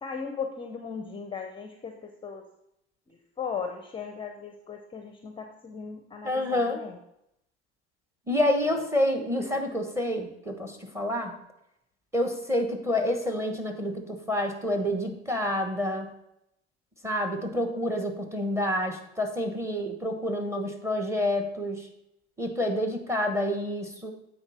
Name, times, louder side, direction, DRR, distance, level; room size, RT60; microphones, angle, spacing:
voice 1, 0.0-2.4 3.1-7.0 9.6-9.7, left 6 dB, 15° left, 5 dB, 0.6 m, -37 dB
voice 2, 6.2-6.8 8.3-11.4 12.1-16.1 17.0-21.9 22.4-24.1, left 1 dB, 10° right, 5 dB, 1.1 m, -28 dB
8.9 x 4.2 x 4.3 m, 0.81 s
hypercardioid pair, 95°, 34 cm